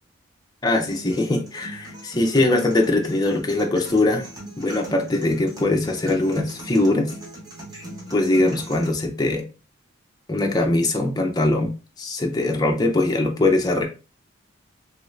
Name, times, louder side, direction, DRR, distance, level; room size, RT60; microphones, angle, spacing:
voice 1, 0.6-4.3 4.6-7.1 8.1-9.5 10.3-11.7 12.0-13.9, left 2 dB, 20° left, 2 dB, 0.5 m, -21 dB
sound 1, 0.9-8.9, right 1 dB, 20° right, 0.8 m, -39 dB
3.1 x 2.5 x 3.1 m, 0.32 s
head